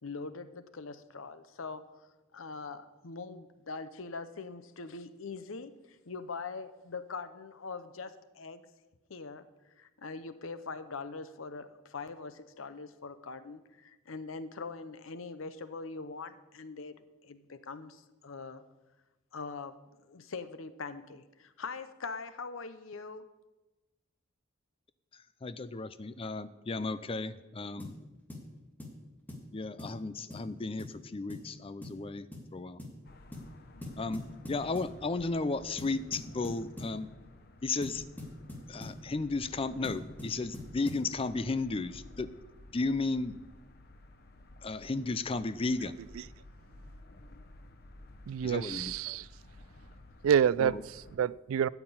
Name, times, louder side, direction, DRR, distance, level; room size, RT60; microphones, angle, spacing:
voice 1, 0.0-8.6 9.1-9.5 9.8-17.0 17.2-18.6 19.3-23.3, left 4 dB, 80° left, 0.8 m, -42 dB
voice 2, 25.4-27.9 29.5-32.8 34.0-37.1 37.6-38.1 38.7-42.3 42.7-43.3 44.6-46.0 48.4-48.9 50.6-50.8, left 3 dB, 25° left, 0.5 m, -34 dB
sound 1, 27.8-28.0 28.3-28.5 28.8-29.0 29.3-29.5 29.8-30.0 30.3-30.5 30.8-31.0 31.3-31.5 31.8-32.0 32.3-32.5 32.8-33.0 33.3-33.5 33.8-35.0 35.8-37.0 37.8-39.0 39.8-41.1, left 1 dB, 10° left, 2.2 m, -43 dB
sound 2, 33.0-51.2, left 1 dB, 50° left, 0.9 m, -54 dB
voice 3, 48.3-49.3 50.2-51.7, right 8 dB, 85° right, 0.3 m, -28 dB
13.0 x 5.9 x 8.7 m
head